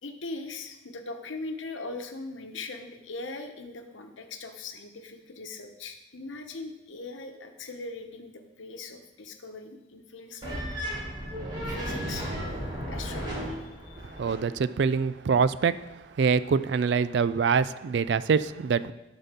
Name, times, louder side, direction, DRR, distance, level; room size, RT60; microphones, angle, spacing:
voice 1, 0.0-10.6 11.6-14.1, left 3 dB, 80° left, 5 dB, 1.0 m, -40 dB
sound 1, 10.4-14.4, equal, 25° right, 3.1 m, -34 dB
voice 2, 14.2-15.7 16.2-18.9, right 5 dB, 60° right, 15 dB, 0.3 m, -24 dB
11.5 x 4.1 x 6.7 m, 1.0 s
head